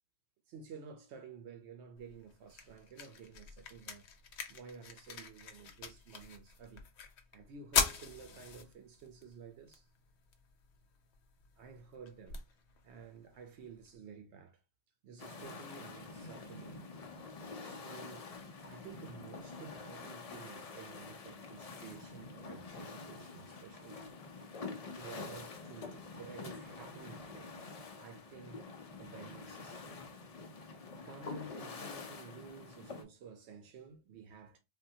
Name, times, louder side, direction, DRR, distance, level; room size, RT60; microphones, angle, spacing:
voice 1, 0.5-4.0 4.5-6.8 7.3-9.9 11.6-12.4 12.8-14.6 15.0-16.9 17.6-24.0 24.9-27.6 28.0-30.1 30.9-34.6, right 5 dB, 85° right, 0.9 m, -52 dB
sound 1, 2.0-14.0, left 6 dB, 85° left, 0.9 m, -42 dB
sound 2, 15.2-33.0, left 4 dB, 45° left, 0.5 m, -47 dB
3.6 x 2.2 x 2.7 m
omnidirectional pair, 1.1 m